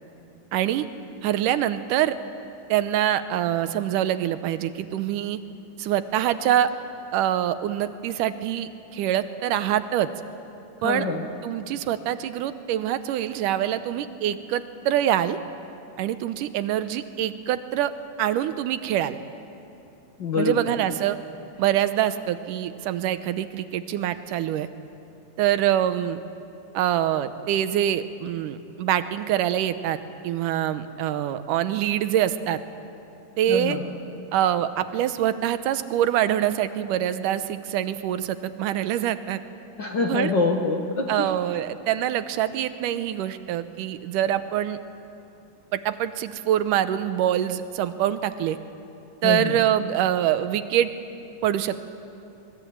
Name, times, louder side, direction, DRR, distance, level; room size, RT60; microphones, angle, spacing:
voice 1, 0.5-0.9 1.2-2.2 2.7-5.4 5.8-6.7 7.1-10.1 10.8-11.1 11.4-15.4 16.0-17.9 18.2-19.2 20.4-21.2 21.6-24.7 25.4-26.2 26.7-30.0 30.2-32.6 33.4-33.8 34.3-39.4 40.1-40.3 41.1-44.8 45.7-48.6 49.2-50.9 51.4-51.9, right 11 dB, 85° right, 12 dB, 2.3 m, -25 dB
voice 2, 10.8-11.2 20.2-20.7 33.5-33.8 39.8-41.3 49.2-49.6, left 3 dB, 50° left, 2 dB, 1.5 m, -25 dB
24.5 x 20.5 x 8.6 m, 2.7 s
omnidirectional pair, 3.8 m